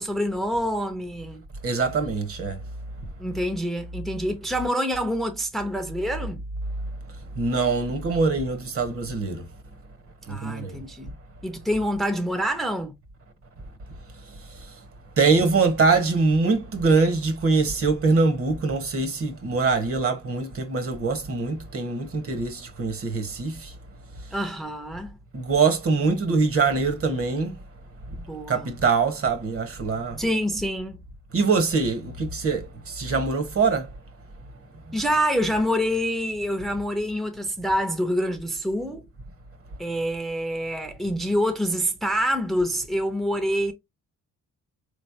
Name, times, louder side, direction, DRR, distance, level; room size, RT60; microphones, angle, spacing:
voice 1, 0.0-1.4 3.2-6.4 10.3-11.1 11.4-12.9 24.3-25.1 28.2-28.7 30.2-31.0 34.9-39.0 39.8-43.7, equal, ahead, 0.7 m, -26 dB
voice 2, 1.6-2.6 7.4-9.5 10.3-10.7 15.2-23.7 25.3-27.5 28.5-30.2 31.3-33.9, right 4 dB, 50° right, 1.2 m, -23 dB
4.1 x 3.2 x 2.7 m
cardioid pair, 90°, 30 cm